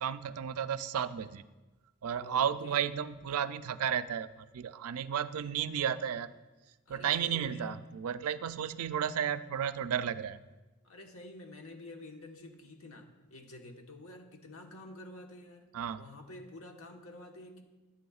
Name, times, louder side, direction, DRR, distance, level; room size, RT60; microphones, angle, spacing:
voice 1, 0.0-1.4 2.0-4.3 4.5-6.3 6.9-10.4 15.7-16.0, right 8 dB, 80° right, 14 dB, 0.4 m, -33 dB
voice 2, 2.1-2.9 6.9-7.7 10.8-15.7 16.0-17.6, left 2 dB, 70° left, 3 dB, 1.3 m, -49 dB
14.0 x 8.5 x 2.4 m, 1.2 s
head